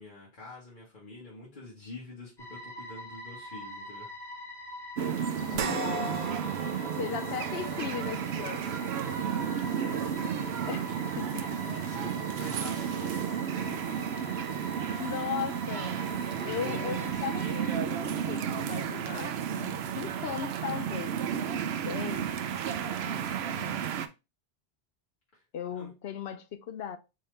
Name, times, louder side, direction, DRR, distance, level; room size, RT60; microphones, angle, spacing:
voice 1, 0.0-4.1 7.3-7.4 9.1-11.0 11.4-13.9 14.8-15.2 16.5-16.8 23.0-23.4 25.3-25.4 25.7-25.9, left 2 dB, 55° left, 1.5 m, -47 dB
sound 1, 2.4-17.7, equal, 25° left, 1.3 m, -44 dB
sound 2, 5.0-24.1, right 8 dB, 90° right, 0.8 m, -33 dB
voice 2, 5.5-6.3 7.0-8.7 10.7-10.9 11.2-11.4 15.0-16.0 16.4-22.3 23.5-23.9 25.5-27.0, left 8 dB, 85° left, 0.9 m, -37 dB
sound 3, 5.5-14.2 14.6-14.7 16.2-16.3, right 6 dB, 60° right, 0.6 m, -41 dB
4.2 x 3.8 x 3.2 m
omnidirectional pair, 1.0 m